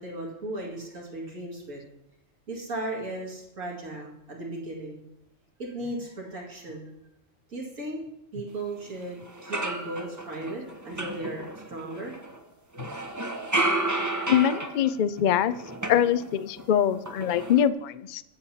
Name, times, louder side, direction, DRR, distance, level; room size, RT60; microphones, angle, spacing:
voice 1, 0.0-1.8 2.5-5.0 5.6-6.9 7.5-8.0 8.3-12.1, right 1 dB, 80° right, -2 dB, 2.5 m, -36 dB
sound 1, 8.9-9.0 9.3-12.4 12.7-16.7 16.9-17.7, right 2 dB, 20° right, 0.7 m, -32 dB
voice 2, 14.3-15.5 15.9-18.2, left 9 dB, 80° left, 14 dB, 0.4 m, -24 dB
24.0 x 8.0 x 2.8 m, 0.86 s
omnidirectional pair, 1.4 m